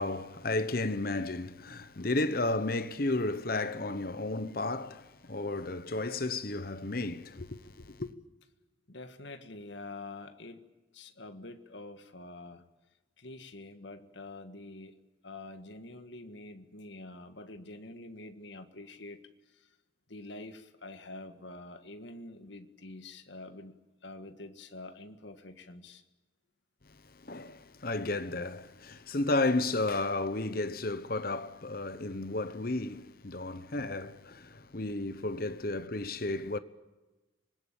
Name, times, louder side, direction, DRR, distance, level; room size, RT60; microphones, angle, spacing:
voice 1, 0.0-8.1 27.1-36.6, left 2 dB, 50° left, 1.0 m, -33 dB
voice 2, 8.9-10.7 10.9-12.6 13.2-14.9 15.2-19.2 19.5-19.7 20.1-23.8 24.0-26.0 31.9-32.0, left 2 dB, 70° left, 1.7 m, -46 dB
25.5 x 20.5 x 9.0 m
head